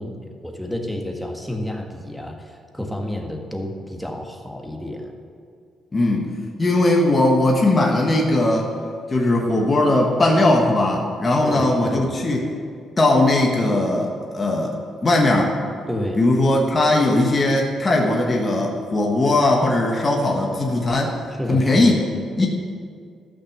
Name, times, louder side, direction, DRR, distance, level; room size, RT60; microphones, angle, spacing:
voice 1, 0.0-5.1 11.3-12.2 15.9-16.2 21.4-22.5, left 1 dB, ahead, 1 dB, 1.7 m, -30 dB
voice 2, 5.9-6.3 6.6-8.7 9.1-12.5 13.0-15.6 16.2-21.2 21.5-22.0 22.4-22.5, left 2 dB, 30° left, -1 dB, 1.4 m, -19 dB
14.5 x 6.1 x 7.3 m, 2.2 s
cardioid pair, 90°, 0 cm